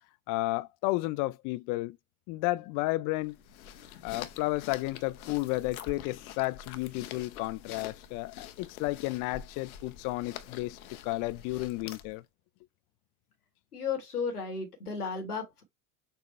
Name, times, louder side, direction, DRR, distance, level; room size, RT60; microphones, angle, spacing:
voice 1, 0.3-2.0 2.3-3.3 4.0-10.8 11.0-12.2, left 20 dB, 45° left, 0.6 m, -32 dB
sound 1, 3.2-12.2, left 9 dB, 70° left, 0.9 m, -46 dB
voice 2, 13.7-15.6, left 5 dB, 85° left, 1.5 m, -34 dB
6.7 x 2.3 x 3.3 m
figure-of-eight pair, 70°, 44 cm